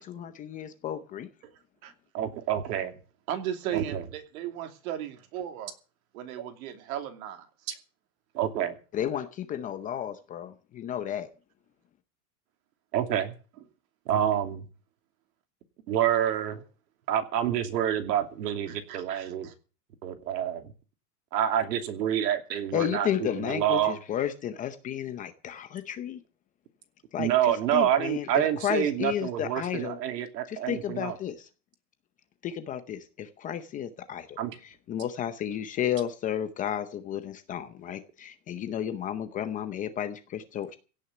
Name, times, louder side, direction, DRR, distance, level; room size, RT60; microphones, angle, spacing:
voice 1, 0.0-1.3 8.9-11.3 22.7-26.2 27.1-30.0 30.5-31.5 32.4-40.8, left 10 dB, 15° left, 0.6 m, -33 dB
voice 2, 2.1-2.9 3.7-4.0 8.3-8.7 12.9-13.3 14.1-14.6 15.9-16.6 17.1-19.5 20.0-20.7 21.3-23.1 23.3-23.9 27.2-31.2 34.4-34.6, right 10 dB, 75° right, 2.8 m, -27 dB
voice 3, 3.3-5.7 6.1-7.5 18.7-19.5, right 10 dB, 55° right, 2.9 m, -36 dB
16.5 x 6.5 x 9.6 m
supercardioid pair, 155°, 49 cm